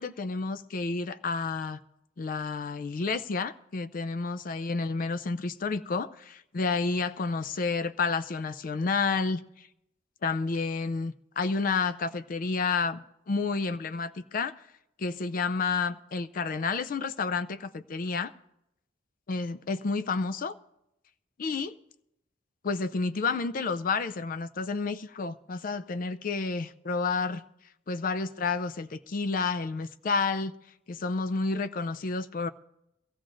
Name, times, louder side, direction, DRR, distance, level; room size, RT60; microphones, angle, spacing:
voice 1, 0.0-1.8 2.2-9.7 10.2-14.5 15.0-18.3 19.3-20.6 21.4-21.7 22.6-27.4 27.9-30.5 30.9-32.5, left 4 dB, 45° left, 0.4 m, -30 dB
22.5 x 15.5 x 2.6 m
head